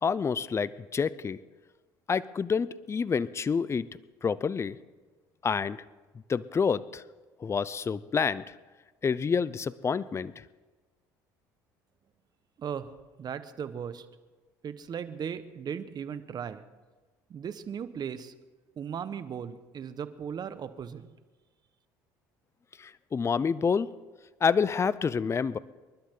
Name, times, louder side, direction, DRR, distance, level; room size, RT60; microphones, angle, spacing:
voice 1, 0.0-1.4 2.1-3.9 4.2-4.8 5.4-5.8 6.3-7.0 7.4-8.5 9.0-10.3 22.8-23.9 24.4-25.6, left 6 dB, 30° left, 18 dB, 0.6 m, -28 dB
voice 2, 13.2-14.0 14.6-16.6 17.3-18.3 18.8-21.1, right 7 dB, 45° right, 12 dB, 1.2 m, -37 dB
27.0 x 11.5 x 3.8 m, 1.3 s
hypercardioid pair, 70°, 10 cm